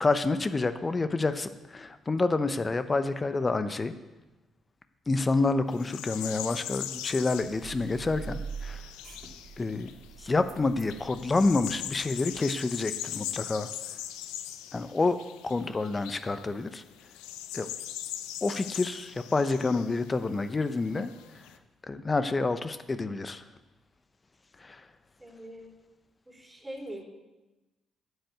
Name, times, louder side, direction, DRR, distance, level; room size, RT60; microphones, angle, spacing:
voice 1, 0.0-3.9 5.1-8.8 9.6-9.9 10.2-13.7 14.7-16.8 17.5-17.7 18.4-21.4 21.9-23.4 24.6-24.8, left 3 dB, 30° left, 11 dB, 0.8 m, -28 dB
sound 1, 5.7-10.1 10.6-21.6, left 12 dB, 80° left, 0.6 m, -41 dB
sound 2, 7.4-12.4, right 6 dB, 60° right, 2.0 m, -44 dB
voice 2, 25.2-25.8 26.3-27.0, right 1 dB, 15° right, -1 dB, 4.0 m, -42 dB
10.0 x 8.1 x 8.0 m, 1.1 s
hypercardioid pair, 55°, 0 cm